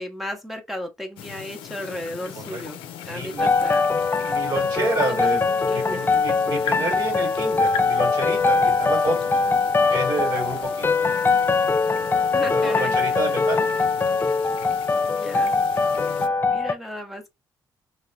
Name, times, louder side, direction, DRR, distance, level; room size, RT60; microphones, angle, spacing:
voice 1, 0.0-2.8 3.1-3.8 5.1-6.0 12.3-13.0 15.1-15.6 16.5-17.3, left 1 dB, ahead, 0.8 m, -34 dB
sound 1, 1.2-16.3, left 8 dB, 85° left, 0.4 m, -38 dB
voice 2, 3.0-3.5 4.3-5.4 5.7-9.4 9.9-10.9 12.4-13.6 15.9-16.1, right 2 dB, 55° right, 2.0 m, -29 dB
sound 2, 3.4-16.7, left 4 dB, 25° left, 0.4 m, -22 dB
2.9 x 2.2 x 3.1 m
supercardioid pair, 55°, 9 cm